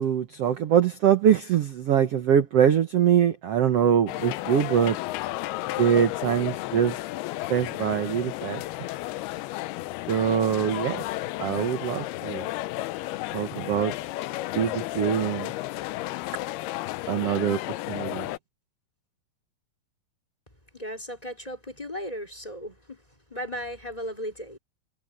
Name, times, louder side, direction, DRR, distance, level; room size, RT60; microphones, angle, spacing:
voice 1, 0.0-5.0 5.8-7.0 7.5-8.6 10.1-11.0 11.4-12.5 13.3-13.9 14.5-15.5 17.1-17.6 17.9-18.3, right 9 dB, 85° right, 1.3 m, -23 dB
sound 1, 4.1-18.4, left 17 dB, 80° left, 2.6 m, -33 dB
voice 2, 20.7-23.0 23.3-24.6, equal, 10° left, 3.5 m, -36 dB
omnidirectional pair, 4.5 m